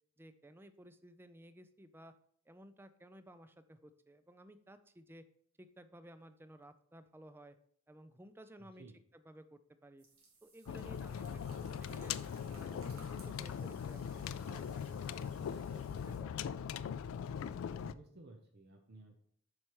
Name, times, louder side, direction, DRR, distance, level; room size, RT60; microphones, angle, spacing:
voice 1, 0.2-2.1 2.5-5.2 5.6-7.6 7.9-8.9 9.1-10.1 10.4-12.2 12.5-15.4 15.7-16.5, right 1 dB, 10° right, 11 dB, 0.4 m, -56 dB
voice 2, 8.6-9.0 15.3-16.0 17.7-19.2, right 2 dB, 50° right, 3 dB, 0.7 m, -57 dB
sound 1, 10.0-16.2, right 3 dB, 80° right, 1.8 m, -62 dB
sound 2, 10.7-17.9, left 7 dB, 75° left, 0.3 m, -40 dB
7.7 x 5.6 x 3.0 m, 0.64 s
head